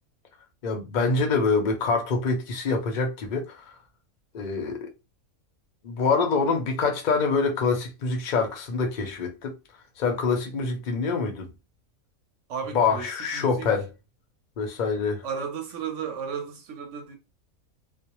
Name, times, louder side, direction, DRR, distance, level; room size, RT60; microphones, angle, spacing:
voice 1, 0.6-3.6 4.3-4.9 5.8-9.5 10.0-11.5 12.7-13.9 14.6-15.2, left 4 dB, 50° left, 0.5 m, -25 dB
voice 2, 12.5-13.7 15.2-17.2, right 6 dB, 60° right, 1.0 m, -34 dB
2.5 x 2.0 x 2.9 m
omnidirectional pair, 1.5 m